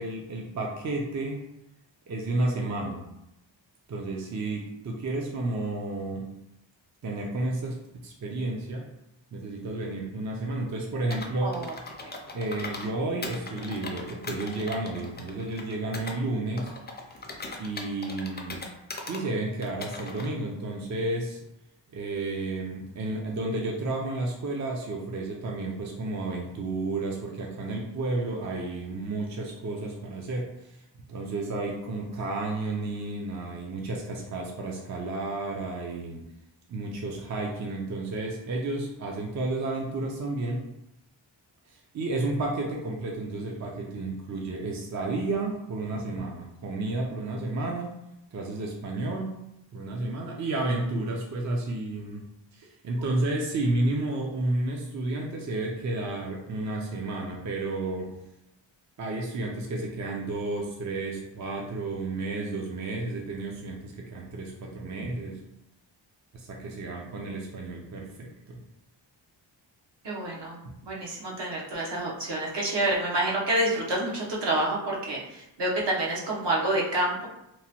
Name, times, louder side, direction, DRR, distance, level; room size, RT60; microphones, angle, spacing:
voice 1, 0.0-1.5 2.1-3.0 3.9-6.3 7.0-8.9 9.3-11.6 12.3-16.7 17.6-18.6 19.1-21.4 21.9-30.8 31.1-36.2 36.7-40.7 41.7-47.9 48.3-49.4 49.7-52.2 52.5-58.1 59.0-65.4 66.3-68.6, right 2 dB, 40° right, -1 dB, 0.4 m, -31 dB
Computer keyboard, 11.1-12.9 13.2-16.2 16.6-19.2 19.6-20.3, left 2 dB, 25° left, 0.4 m, -39 dB
voice 2, 11.4-11.7 12.0-12.1 70.0-77.3, right 1 dB, 65° right, -3 dB, 0.9 m, -28 dB
3.0 x 2.1 x 2.8 m, 0.85 s
wide cardioid pair, 95°, 46 cm